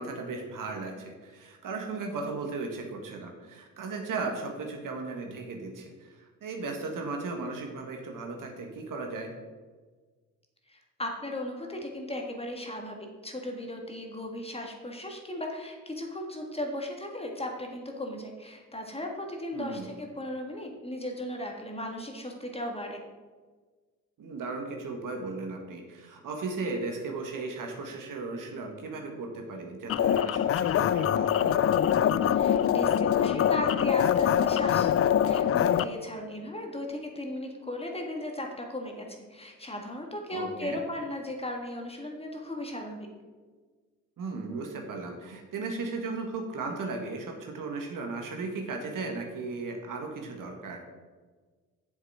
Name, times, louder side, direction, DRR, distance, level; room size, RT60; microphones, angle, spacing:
voice 1, 0.0-9.3 19.5-19.9 24.2-31.6 40.3-40.8 44.2-50.8, right 3 dB, 55° right, 3 dB, 1.7 m, -36 dB
voice 2, 10.7-23.0 32.3-43.1, left 1 dB, 15° left, 2 dB, 1.8 m, -36 dB
sound 1, 29.9-35.8, left 9 dB, 40° left, 0.4 m, -24 dB
7.3 x 7.2 x 4.9 m, 1.4 s
hypercardioid pair, 50°, 38 cm